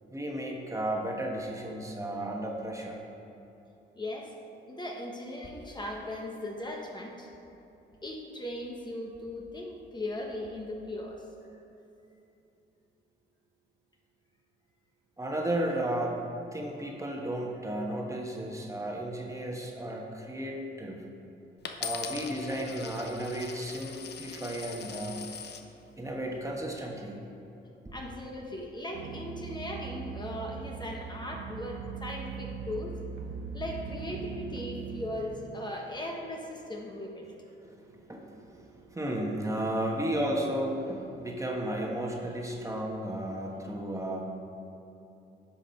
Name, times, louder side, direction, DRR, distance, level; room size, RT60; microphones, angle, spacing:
voice 1, 0.1-3.0 15.2-16.1 16.5-21.0 21.8-25.3 26.0-27.1 27.8-28.0 37.7-44.2, right 1 dB, 15° right, 0 dB, 1.3 m, -34 dB
voice 2, 3.9-4.3 4.7-7.3 8.0-11.2 27.9-33.0 33.5-37.3, left 1 dB, 20° left, 0 dB, 1.1 m, -38 dB
Coin (dropping), 21.6-25.7 26.4-26.8, left 7 dB, 55° left, 0.8 m, -41 dB
sound 1, 28.9-35.1, right 6 dB, 90° right, 0.8 m, -40 dB
10.5 x 6.0 x 4.4 m, 2.9 s
cardioid pair, 90°, 20 cm